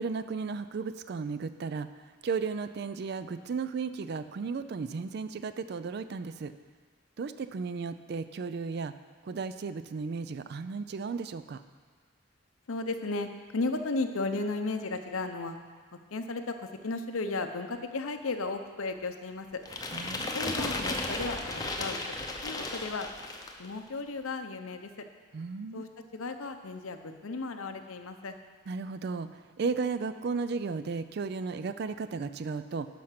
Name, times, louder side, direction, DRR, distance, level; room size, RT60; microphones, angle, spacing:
voice 1, 0.0-1.9 2.2-6.5 7.2-8.9 9.2-11.6 19.9-20.3 25.3-25.8 28.7-29.3 29.6-32.9, right 4 dB, 50° right, 12 dB, 0.3 m, -34 dB
voice 2, 12.7-15.6 16.1-16.6 16.8-19.6 20.3-22.2 22.4-23.1 23.6-24.9 25.7-28.4, left 3 dB, 85° left, 7 dB, 0.7 m, -34 dB
sound 1, 19.7-23.7, left 2 dB, 20° left, 0.7 m, -34 dB
11.5 x 5.8 x 5.8 m, 1.5 s
head